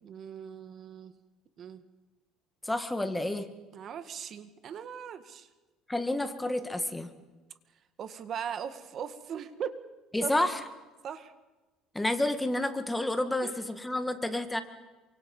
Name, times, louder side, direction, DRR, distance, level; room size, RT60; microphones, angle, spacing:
voice 1, 0.0-1.1 1.6-1.8 3.7-5.5 8.0-9.8 10.2-10.3 11.0-11.3 13.4-13.5, right 8 dB, 45° right, 10 dB, 1.9 m, -39 dB
voice 2, 2.6-3.5 5.9-7.1 10.1-10.6 11.9-14.6, left 1 dB, 5° left, 8 dB, 1.9 m, -30 dB
28.0 x 25.0 x 5.6 m, 1.2 s
cardioid pair, 130°, 0 cm